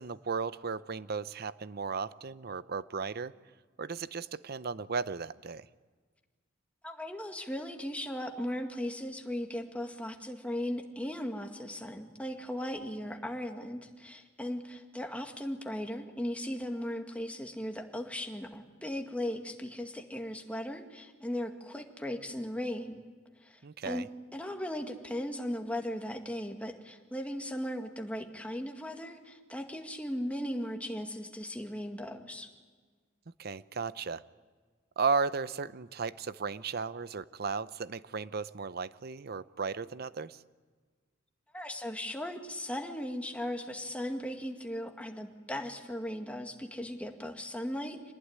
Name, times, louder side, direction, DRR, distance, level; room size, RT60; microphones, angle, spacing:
voice 1, 0.0-3.3 3.8-5.7 23.6-24.1 33.4-34.2 35.0-40.4, right 5 dB, 55° right, 16 dB, 0.7 m, -35 dB
voice 2, 6.8-23.0 23.4-24.1 24.3-32.5 41.5-48.1, left 1 dB, 5° left, 4 dB, 2.0 m, -37 dB
26.0 x 19.5 x 9.7 m, 1.5 s
head